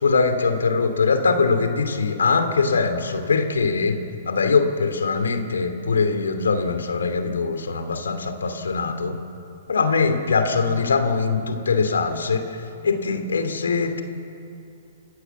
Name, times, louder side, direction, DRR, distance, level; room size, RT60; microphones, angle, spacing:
voice 1, 0.0-4.0 4.3-9.2 9.7-12.5 12.8-14.0, left 4 dB, 80° left, 8 dB, 2.7 m, -22 dB
29.5 x 16.5 x 7.2 m, 2.7 s
hypercardioid pair, 125°, 0 cm